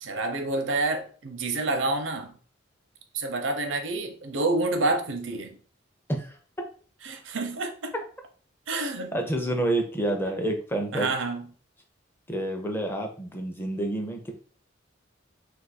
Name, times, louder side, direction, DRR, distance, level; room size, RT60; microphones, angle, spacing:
voice 1, 0.0-2.3 3.1-5.6 7.0-7.9 8.7-9.2 10.9-11.5, right 2 dB, 80° right, 6 dB, 0.6 m, -28 dB
voice 2, 9.1-11.1 12.3-14.3, right 1 dB, 10° left, 3 dB, 0.5 m, -28 dB
2.5 x 2.4 x 4.1 m, 0.42 s
head